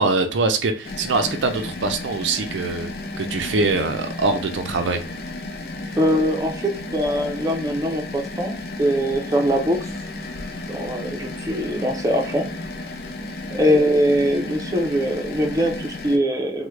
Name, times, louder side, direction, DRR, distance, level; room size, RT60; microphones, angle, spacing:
voice 1, 0.0-2.9 3.2-5.0, right 3 dB, 90° right, 0.5 m, -23 dB
sound 1, 0.8-16.2, left 2 dB, 55° left, 0.5 m, -33 dB
voice 2, 5.9-9.9 10.7-12.5 13.5-16.7, equal, 20° right, 0.5 m, -22 dB
3.4 x 2.1 x 3.2 m
head